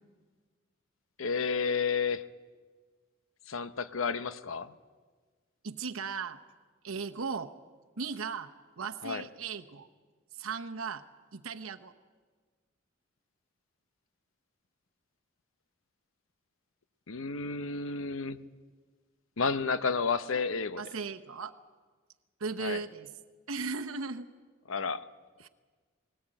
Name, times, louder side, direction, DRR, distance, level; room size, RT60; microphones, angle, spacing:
voice 1, 1.2-2.2 3.5-4.7 9.0-9.2 17.1-18.4 19.4-20.8 22.6-22.8 24.7-25.0, left 5 dB, 75° left, 13 dB, 0.8 m, -31 dB
voice 2, 5.6-6.4 6.8-7.5 8.0-8.5 8.8-9.9 10.4-11.0 11.3-11.9 20.8-21.5 22.4-23.1 23.5-24.3 25.4-25.5, right 5 dB, 90° right, 5 dB, 0.9 m, -36 dB
20.0 x 18.5 x 8.9 m, 1.5 s
head